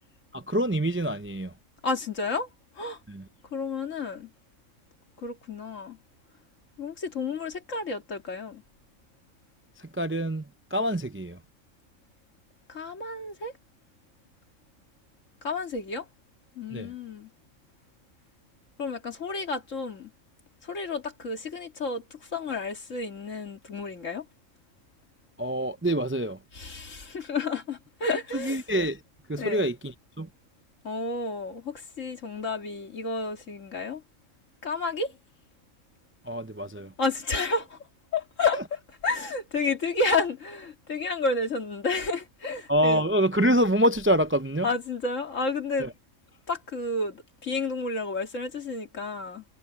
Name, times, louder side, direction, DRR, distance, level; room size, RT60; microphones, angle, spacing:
voice 1, 0.3-1.5 3.1-3.2 9.8-11.4 16.7-16.9 25.4-26.4 28.3-29.0 29.3-30.3 36.2-36.9 42.7-44.7 45.8-45.9, equal, 20° right, 0.3 m, -26 dB
voice 2, 1.8-2.5 2.7-3.0 3.5-4.3 5.2-6.0 6.8-8.6 12.7-13.5 15.4-16.1 16.6-17.3 18.8-20.1 20.6-24.3 26.5-28.6 29.4-29.6 30.8-34.0 34.6-35.2 37.0-37.8 38.1-43.0 44.6-45.9 46.5-49.4, left 3 dB, 70° left, 2.6 m, -31 dB
omnidirectional pair, 1.3 m